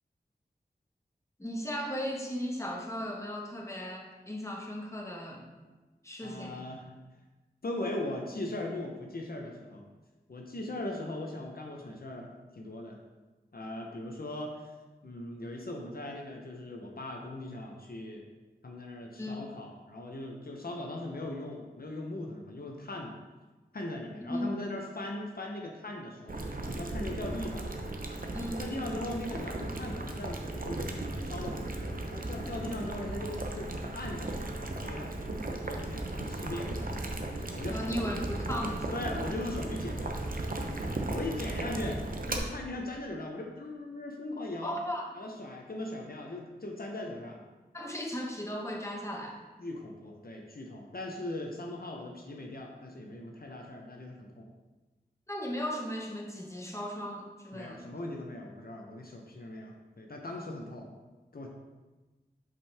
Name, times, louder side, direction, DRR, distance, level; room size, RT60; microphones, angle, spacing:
voice 1, 1.4-5.4 6.0-6.6 19.2-19.5 24.3-24.5 28.3-28.7 37.7-39.0 44.6-45.1 47.7-49.4 55.3-57.8, equal, 15° left, 0 dB, 1.0 m, -36 dB
voice 2, 6.2-6.9 7.6-9.9 10.3-13.0 13.5-14.7 15.0-18.2 18.6-23.2 23.7-26.4 26.7-27.7 28.6-36.9 37.5-38.1 38.9-40.2 41.1-44.8 45.1-47.4 49.6-54.5 57.5-60.9 61.3-61.5, left 1 dB, 65° left, 1 dB, 0.7 m, -39 dB
Boiling, 26.3-42.4, right 2 dB, 60° right, 0.7 m, -36 dB
5.3 x 5.3 x 3.4 m, 1.2 s
wide cardioid pair, 60°, 17 cm